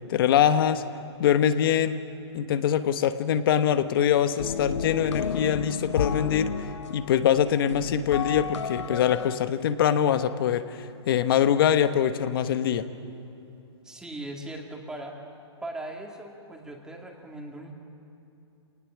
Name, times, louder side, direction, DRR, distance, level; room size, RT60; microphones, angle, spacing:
voice 1, 0.1-0.8 1.2-2.0 2.3-6.5 6.9-12.9, left 9 dB, 50° left, 11 dB, 1.1 m, -23 dB
sound 1, 4.4-9.4, left 6 dB, 75° left, 1.0 m, -32 dB
voice 2, 13.8-15.2 15.6-17.7, right 1 dB, 5° right, 1 dB, 2.0 m, -39 dB
27.0 x 19.0 x 7.3 m, 2.8 s
hypercardioid pair, 155°, 15 cm